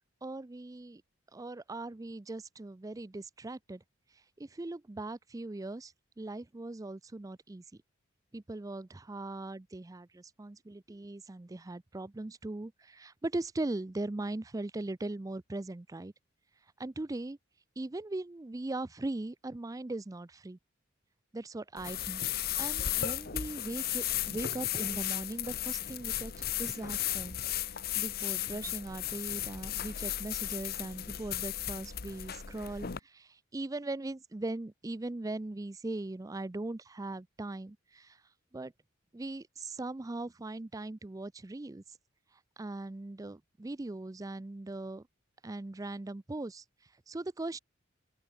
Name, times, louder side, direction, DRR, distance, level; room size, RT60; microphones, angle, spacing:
voice 1, 0.2-1.0 1.3-3.8 4.4-7.6 8.3-16.1 16.8-17.4 17.8-20.6 21.3-26.3 26.6-27.4 27.7-38.2 38.5-38.7 39.1-41.8 42.6-45.1 45.4-46.6 47.1-47.6, right 2 dB, 15° right, 0.4 m, -39 dB
sound 1, 21.8-33.0, left 12 dB, 50° left, 0.8 m, -35 dB
open air
head